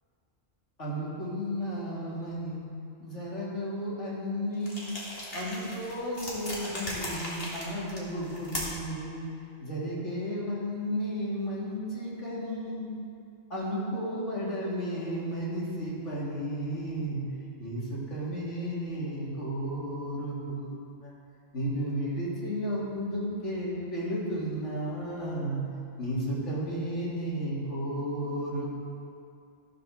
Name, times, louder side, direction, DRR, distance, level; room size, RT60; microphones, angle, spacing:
voice 1, 0.8-2.6 3.0-4.9 5.3-9.2 9.6-13.0 13.5-17.2 17.6-21.1 21.5-25.6 26.0-28.7, equal, 70° left, -6 dB, 2.8 m, -33 dB
sound 1, 4.6-8.9, left 1 dB, 50° left, 2.2 m, -38 dB
14.0 x 5.2 x 6.4 m, 2.5 s
omnidirectional pair, 1.3 m